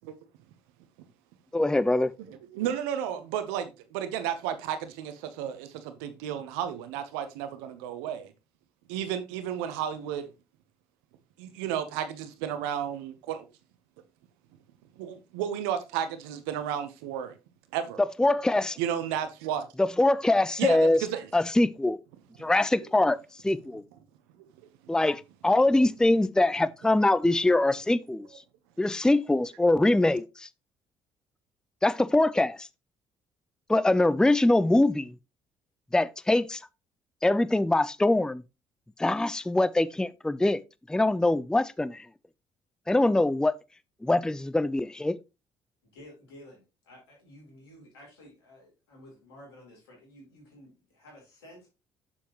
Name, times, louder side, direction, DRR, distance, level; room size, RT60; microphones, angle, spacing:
voice 1, 1.5-2.1 18.2-18.8 19.8-21.0 21.3-22.0 22.4-23.2 23.4-23.8 24.9-28.3 28.8-30.5 31.8-32.7 33.7-35.1 35.9-36.6 37.2-38.4 39.0-40.6 40.9-42.1 42.9-43.6 44.0-45.2, left 2 dB, 5° left, 0.5 m, -23 dB
voice 2, 2.3-8.3 8.9-10.3 11.4-13.5 15.0-17.3 17.7-18.1 18.8-19.7 20.6-21.3, right 9 dB, 80° right, 1.0 m, -32 dB
voice 3, 45.8-51.7, left 1 dB, 90° left, 3.9 m, -52 dB
7.1 x 7.0 x 3.0 m
hypercardioid pair, 55°, 13 cm